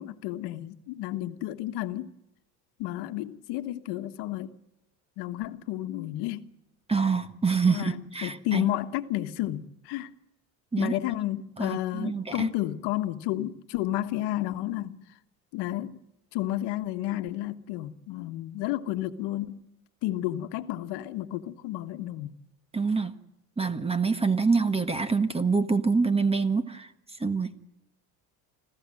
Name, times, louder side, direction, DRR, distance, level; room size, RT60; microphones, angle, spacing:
voice 1, 0.0-2.1 2.8-4.6 5.2-6.5 7.7-10.1 10.8-15.0 15.5-16.0 16.3-19.6 20.0-22.4, left 14 dB, 80° left, 1.4 m, -31 dB
voice 2, 6.9-8.7 10.7-10.9 11.6-12.5 22.7-23.1 23.6-26.9 27.2-27.5, right 4 dB, 15° right, 1.6 m, -26 dB
26.0 x 15.5 x 7.7 m
supercardioid pair, 95°, 40 cm